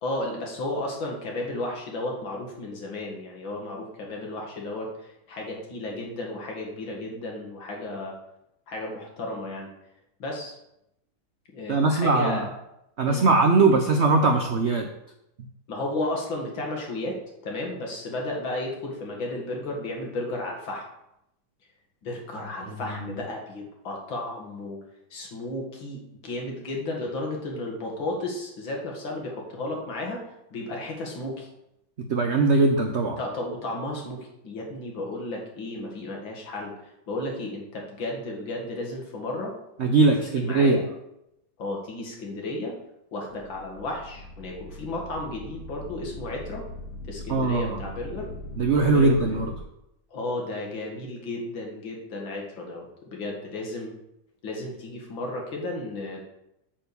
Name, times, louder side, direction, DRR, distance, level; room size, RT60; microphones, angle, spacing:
voice 1, 0.0-8.1 8.7-9.7 10.2-10.5 11.5-12.5 13.1-13.3 15.7-17.2 17.4-20.8 22.0-24.8 25.1-30.2 30.5-31.5 33.2-36.7 37.1-39.5 40.2-40.9 41.6-42.7 43.1-46.6 47.1-48.3 48.9-49.4 50.1-53.9 54.4-56.2, left 2 dB, 70° left, 0 dB, 2.6 m, -33 dB
voice 2, 11.7-12.4 13.0-14.9 22.7-22.8 32.1-33.2 39.8-40.8 47.3-47.8 48.6-49.5, right 3 dB, 80° right, 4 dB, 0.6 m, -21 dB
sound 1, 43.3-49.6, left 1 dB, 90° left, 1.8 m, -40 dB
8.9 x 4.6 x 6.9 m, 0.84 s
omnidirectional pair, 2.2 m